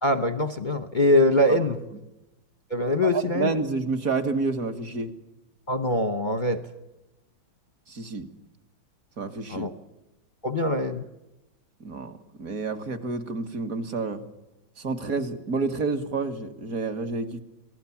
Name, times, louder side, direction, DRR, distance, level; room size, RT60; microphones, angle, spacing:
voice 1, 0.0-1.8 2.7-3.5 5.7-6.6 9.5-9.7 10.4-11.1, left 1 dB, 35° left, 10 dB, 0.8 m, -23 dB
voice 2, 3.0-5.1 7.9-8.3 9.2-9.7 11.8-14.2 14.8-17.4, right 4 dB, 45° right, 7 dB, 2.1 m, -29 dB
27.0 x 19.0 x 7.2 m, 0.98 s
omnidirectional pair, 2.2 m